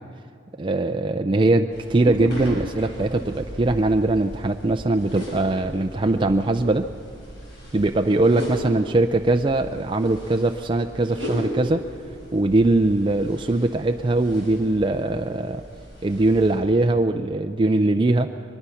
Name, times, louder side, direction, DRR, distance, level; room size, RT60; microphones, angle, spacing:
voice 1, 0.6-6.9 7.7-11.8 12.3-15.6 16.0-18.3, right 2 dB, 25° right, 5 dB, 0.5 m, -21 dB
sound 1, 1.7-16.6, equal, 65° left, 5.3 m, -36 dB
22.5 x 22.0 x 5.7 m, 2.3 s
head